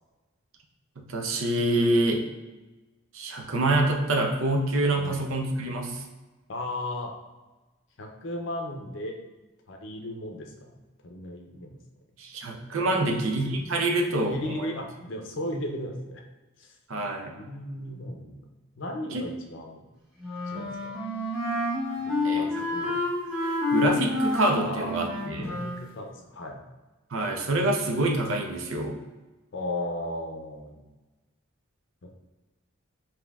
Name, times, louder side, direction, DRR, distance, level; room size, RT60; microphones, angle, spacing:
voice 1, 1.0-2.2 3.1-6.0 12.2-14.7 16.9-17.3 19.1-19.2 22.2-22.6 23.7-25.5 27.1-29.0, right 2 dB, 70° right, 2 dB, 0.6 m, -26 dB
voice 2, 6.5-7.1 8.0-9.2 9.7-11.8 13.0-13.2 14.3-16.2 16.6-16.7 17.3-18.5 18.8-19.9 20.5-21.0 22.0-23.0 24.6-24.9 25.4-26.6 29.5-30.8 32.0-32.1, left 1 dB, 60° left, 3 dB, 0.6 m, -36 dB
Wind instrument woodwind instrument, 20.2-25.9, left 2 dB, 5° right, 0.7 m, -29 dB
5.2 x 2.8 x 2.3 m, 1.2 s
head